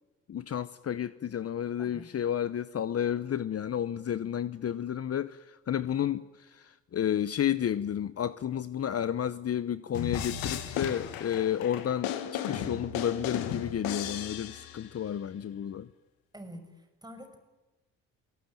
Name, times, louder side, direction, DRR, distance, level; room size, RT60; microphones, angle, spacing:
voice 1, 0.3-15.9, left 9 dB, 45° left, 0.9 m, -31 dB
sound 1, 9.9-15.0, left 9 dB, 85° left, 2.0 m, -35 dB
voice 2, 16.3-17.4, equal, 10° right, 6.3 m, -46 dB
29.0 x 18.0 x 9.2 m
supercardioid pair, 60°, 34 cm